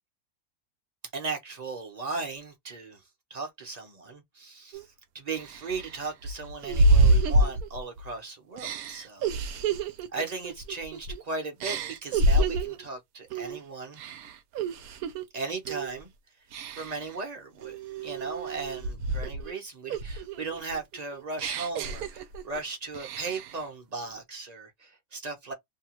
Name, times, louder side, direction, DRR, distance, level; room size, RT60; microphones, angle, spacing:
voice 1, 1.1-3.0 3.3-4.9 5.1-14.0 15.3-16.1 16.7-17.8 18.0-25.5, right 3 dB, 35° right, 0.6 m, -37 dB
sound 1, 4.7-4.8 5.4-8.1 8.6-11.2 11.6-12.8 13.3-13.6 13.9-15.2 15.6-16.0 16.5-17.1 17.6-19.5 19.9-22.6 22.9-23.6, right 2 dB, 70° right, 1.0 m, -27 dB
2.8 x 2.3 x 2.9 m
omnidirectional pair, 1.7 m